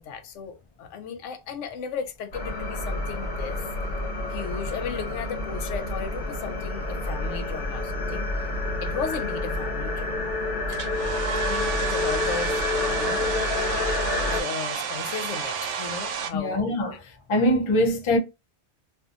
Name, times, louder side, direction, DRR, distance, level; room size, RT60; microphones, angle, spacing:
voice 1, 0.0-3.7 4.3-10.8 11.4-13.7 14.2-16.6, left 6 dB, 85° left, 0.9 m, -35 dB
sound 1, 2.3-14.4, left 2 dB, 55° left, 1.0 m, -28 dB
Domestic sounds home sounds, 10.7-16.3, right 6 dB, 85° right, 0.9 m, -31 dB
voice 2, 16.3-16.9 17.3-18.2, left 1 dB, 40° left, 0.4 m, -22 dB
2.6 x 2.5 x 2.4 m
omnidirectional pair, 1.2 m